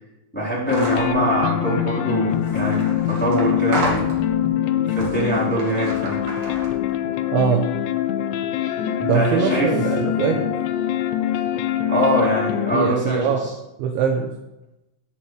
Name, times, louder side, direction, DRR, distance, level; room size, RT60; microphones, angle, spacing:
voice 1, 0.3-4.1 4.9-6.2 9.0-9.7 10.3-10.4 11.9-13.5, right 1 dB, ahead, -9 dB, 3.6 m, -23 dB
sound 1, 0.7-12.9, left 11 dB, 80° left, 2.5 m, -24 dB
sound 2, 0.7-1.1 2.3-4.5 4.9-6.9, right 1 dB, 50° right, 2.7 m, -31 dB
voice 2, 7.3-7.6 9.1-10.5 12.7-13.5 13.8-14.3, right 7 dB, 75° right, 2 dB, 3.0 m, -22 dB
20.5 x 7.6 x 3.4 m, 0.94 s
omnidirectional pair, 5.9 m